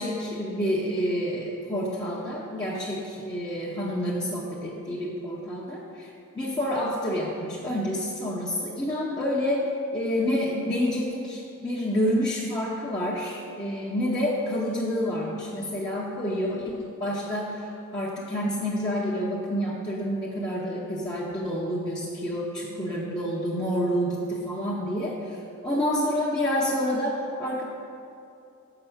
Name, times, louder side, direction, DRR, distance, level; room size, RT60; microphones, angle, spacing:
voice 1, 0.0-9.6 9.9-27.6, equal, 20° left, -7 dB, 0.7 m, -28 dB
6.7 x 5.3 x 7.1 m, 2.6 s
head